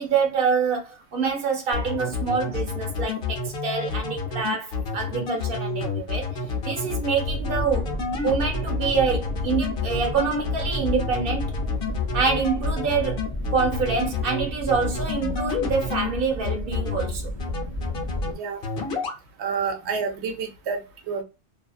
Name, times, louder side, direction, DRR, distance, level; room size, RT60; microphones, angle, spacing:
voice 1, 0.0-7.9 8.2-11.5 12.1-13.2 13.5-17.3, right 5 dB, 55° right, 1.0 m, -26 dB
sound 1, 1.7-16.1 16.4-17.1 17.4-18.3 18.6-19.2, left 4 dB, 60° left, 1.0 m, -29 dB
sound 2, 7.2-18.3, equal, 40° left, 0.4 m, -32 dB
voice 2, 19.4-20.8 21.1-21.2, right 5 dB, 90° right, 0.9 m, -28 dB
2.7 x 2.6 x 2.3 m
omnidirectional pair, 1.1 m